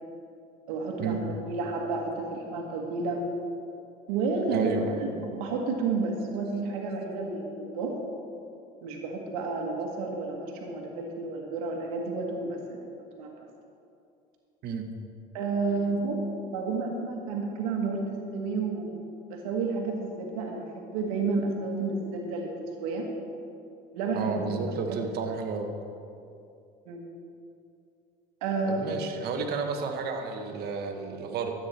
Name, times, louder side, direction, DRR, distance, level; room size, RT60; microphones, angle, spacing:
voice 1, 0.7-3.2 4.1-7.9 8.8-12.8 13.1-13.3 15.3-16.2 16.5-19.0 19.3-23.1 23.9-25.0 26.9-27.1 28.4-28.9, right 3 dB, 90° right, 1 dB, 1.6 m, -31 dB
voice 2, 4.5-4.8 14.6-14.9 24.1-25.7 28.7-31.5, right 5 dB, 60° right, 4 dB, 1.4 m, -32 dB
13.0 x 8.7 x 4.5 m, 2.5 s
supercardioid pair, 90°, 18 cm